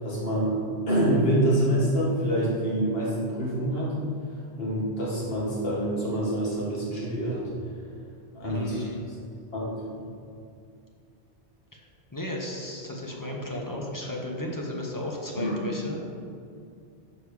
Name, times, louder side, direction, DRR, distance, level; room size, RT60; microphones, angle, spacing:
voice 1, 0.0-3.9 4.5-7.5 8.3-8.9 9.5-9.7 15.4-15.5, right 1 dB, 60° left, -5 dB, 1.9 m, -26 dB
voice 2, 8.5-9.0 11.7-11.8 12.1-16.1, left 1 dB, 20° left, -1 dB, 0.9 m, -34 dB
6.7 x 5.4 x 4.8 m, 2.4 s
omnidirectional pair, 1.1 m